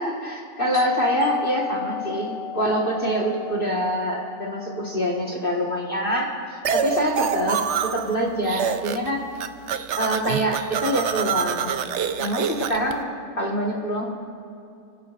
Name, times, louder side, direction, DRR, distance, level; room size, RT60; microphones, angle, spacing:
voice 1, 0.0-7.6 7.9-9.2 10.0-11.7 12.2-13.1 13.4-14.0, equal, 30° left, -1 dB, 1.7 m, -25 dB
Doorbell, 0.7-6.1, left 7 dB, 80° left, 2.1 m, -32 dB
sound 1, 6.6-8.1 8.4-9.1 9.3-12.9, right 8 dB, 85° right, 0.6 m, -26 dB
29.5 x 16.5 x 2.5 m, 2.6 s
omnidirectional pair, 2.0 m